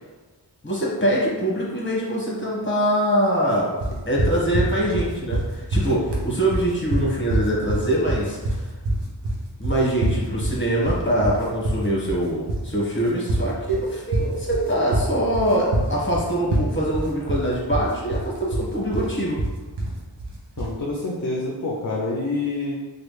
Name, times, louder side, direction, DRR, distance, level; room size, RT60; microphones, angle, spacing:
voice 1, 0.6-3.7 4.1-8.6 9.6-19.4, right 1 dB, 25° left, -5 dB, 1.2 m, -23 dB
sound 1, 3.8-20.8, right 1 dB, 70° right, 0.7 m, -25 dB
voice 2, 20.6-22.7, left 2 dB, 45° left, -2 dB, 0.6 m, -27 dB
3.2 x 2.4 x 3.1 m, 1.3 s
wide cardioid pair, 40°, 44 cm